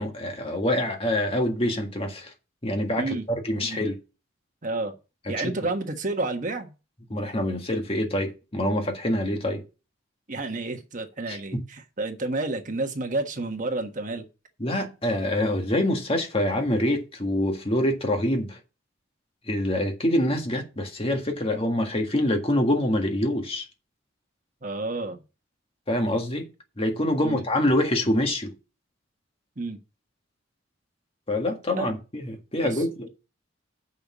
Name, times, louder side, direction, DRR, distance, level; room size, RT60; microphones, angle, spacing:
voice 1, 0.0-2.3 2.6-4.0 5.3-5.5 7.1-9.6 11.3-11.6 14.6-18.6 19.5-23.7 25.9-26.5 26.8-28.5 31.3-33.1, left 1 dB, 30° left, 1.8 m, -25 dB
voice 2, 4.6-4.9 5.3-6.7 10.3-14.2 24.6-25.2 27.2-27.4 29.6-29.8 31.7-32.0 32.6-32.8, right 2 dB, 40° right, 1.4 m, -30 dB
6.9 x 5.7 x 7.3 m
head